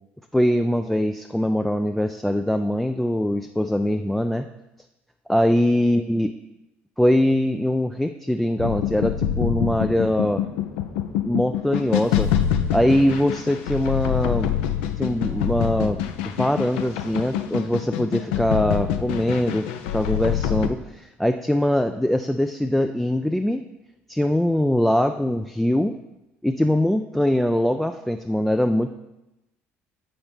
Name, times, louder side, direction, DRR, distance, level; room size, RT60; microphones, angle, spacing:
voice 1, 0.3-4.5 5.3-6.3 7.0-10.4 11.2-12.3 12.7-14.6 15.0-16.0 16.2-19.7 19.9-23.6 24.1-25.9 26.4-29.0, left 1 dB, 5° left, 7 dB, 0.3 m, -22 dB
sound 1, 8.6-20.7, left 10 dB, 65° left, 0.5 m, -25 dB
7.7 x 5.9 x 3.4 m, 0.96 s
figure-of-eight pair, 55°, 7 cm